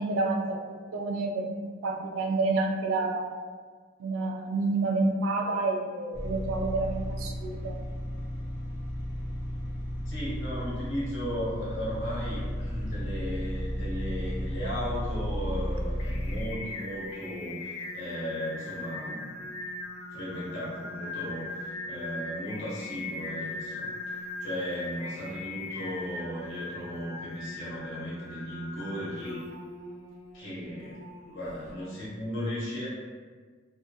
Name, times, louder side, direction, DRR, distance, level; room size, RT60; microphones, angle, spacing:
voice 1, 0.0-3.3 4.0-7.9, right 3 dB, 75° right, 3 dB, 0.3 m, -29 dB
sound 1, 6.1-16.4, equal, 15° left, 0.5 m, -34 dB
voice 2, 10.1-19.4 20.1-23.9 24.4-29.4 30.3-31.0 31.3-32.9, equal, 65° left, -8 dB, 1.1 m, -36 dB
Singing, 15.5-31.7, left 2 dB, 90° left, 0.4 m, -40 dB
2.7 x 2.3 x 2.2 m, 1.5 s
head